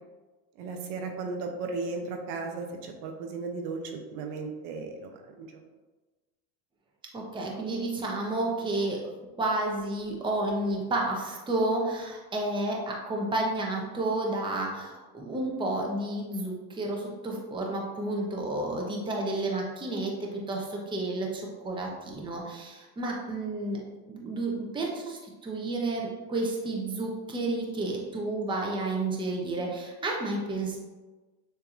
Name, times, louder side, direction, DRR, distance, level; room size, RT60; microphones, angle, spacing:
voice 1, 0.6-5.6, right 3 dB, 70° right, 4 dB, 0.9 m, -36 dB
voice 2, 7.1-9.0 9.4-23.8 24.1-30.8, right 2 dB, 10° right, -1 dB, 0.7 m, -31 dB
6.8 x 2.8 x 2.5 m, 1.2 s
supercardioid pair, 120°, 45 cm